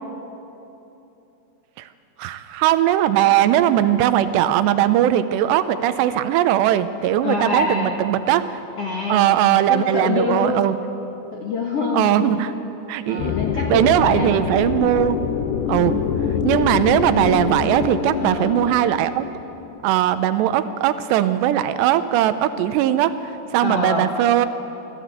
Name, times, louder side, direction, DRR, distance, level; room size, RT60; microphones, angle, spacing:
voice 1, 2.2-8.6 9.1-10.8 11.9-12.5 12.9-13.3 13.7-15.2 15.7-16.0 16.4-19.3 19.8-24.5, right 11 dB, 85° right, 11 dB, 2.9 m, -19 dB
voice 2, 7.2-8.0 8.8-9.4 9.7-10.6 11.3-12.4 13.1-14.5 18.2-18.5 23.6-24.1, left 3 dB, 55° left, -1 dB, 1.8 m, -25 dB
sound 1, 13.2-19.8, left 7 dB, 80° left, 2.8 m, -25 dB
25.0 x 16.0 x 8.2 m, 3.0 s
omnidirectional pair, 4.9 m